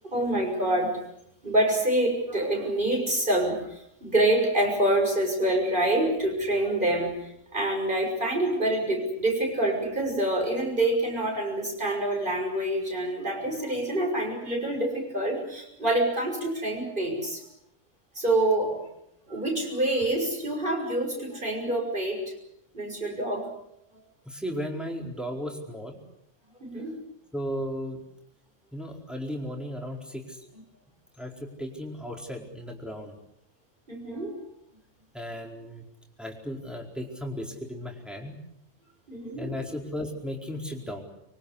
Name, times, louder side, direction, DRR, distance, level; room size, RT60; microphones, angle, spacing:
voice 1, 0.1-1.0 1.4-17.4 18.2-18.9 19.3-22.3 22.7-23.5 26.6-26.9 33.9-34.3 39.1-39.5, right 1 dB, 40° right, 2 dB, 6.9 m, -26 dB
voice 2, 24.2-26.0 27.3-28.0 28.7-30.5 31.2-33.2 35.1-35.8 36.2-38.4 39.4-41.0, equal, ahead, 1 dB, 4.6 m, -35 dB
25.0 x 24.0 x 8.3 m, 0.76 s
omnidirectional pair, 1.3 m